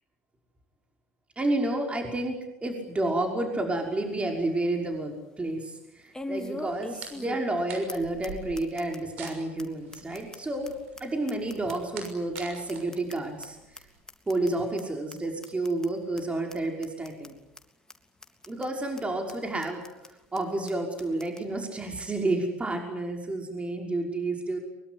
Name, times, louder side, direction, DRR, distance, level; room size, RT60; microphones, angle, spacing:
voice 1, 1.4-2.4 2.6-10.7 11.0-13.6 14.3-17.3 18.5-19.8 20.3-24.6, right 2 dB, 15° right, 3 dB, 5.8 m, -30 dB
sound 1, 3.8-3.9 4.3-4.4 6.1-7.6 7.9-8.0 8.2-8.3 8.6-9.0 9.3-9.4 9.6-9.7 9.9-12.1 12.3-13.5 13.7-13.8 14.1-14.5 14.8-14.9 15.1-15.2 15.4-15.9 16.2-16.3 16.5-16.6 16.8-17.3 17.6-17.7 17.9-18.0 18.2-18.7 19.0-19.1 19.3-19.4 19.6-20.1 20.4-20.5 20.7-20.8 21.0-21.4, left 1 dB, 10° left, 3.3 m, -40 dB
sound 2, 6.7-14.0, right 6 dB, 70° right, 6.3 m, -46 dB
23.5 x 23.0 x 9.9 m, 0.92 s
hypercardioid pair, 70°, 7 cm